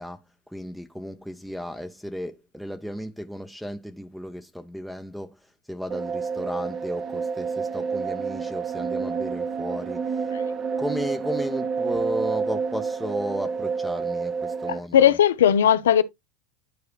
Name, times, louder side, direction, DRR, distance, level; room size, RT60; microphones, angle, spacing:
voice 1, 0.0-10.3 10.8-15.2, equal, ahead, 0.6 m, -34 dB
sound 1, 5.9-14.8, right 5 dB, 35° right, 0.9 m, -29 dB
voice 2, 14.7-16.0, left 9 dB, 85° left, 0.6 m, -18 dB
12.0 x 4.2 x 2.3 m
hypercardioid pair, 100°, 0 cm